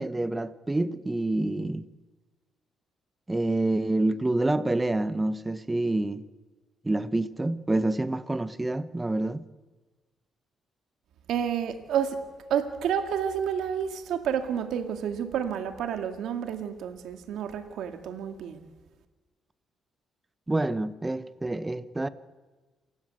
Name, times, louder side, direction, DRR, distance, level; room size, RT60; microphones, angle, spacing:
voice 1, 0.0-1.8 3.3-6.2 6.8-9.4 20.5-22.1, right 2 dB, 15° right, 1.2 m, -27 dB
voice 2, 11.3-12.2 12.5-18.7, right 8 dB, 80° right, 2.1 m, -30 dB
28.5 x 17.0 x 7.8 m
cardioid pair, 90°, 0 cm